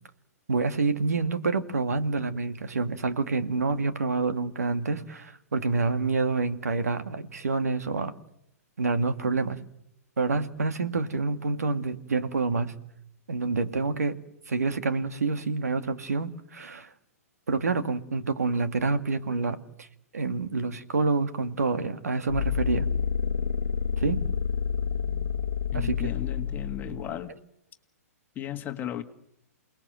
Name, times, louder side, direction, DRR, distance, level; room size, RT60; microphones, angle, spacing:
voice 1, 0.5-8.1 8.8-9.6 10.2-12.7 13.3-14.2 14.5-16.9 17.5-19.9 20.1-22.9 24.0-24.2 25.7-26.1, right 4 dB, 80° right, 9 dB, 2.2 m, -27 dB
sound 1, 22.3-27.2, left 7 dB, 65° left, 1.1 m, -28 dB
voice 2, 25.7-27.4 28.4-29.0, left 9 dB, 20° left, 7 dB, 1.8 m, -35 dB
28.5 x 20.0 x 7.9 m, 0.79 s
hypercardioid pair, 125°, 8 cm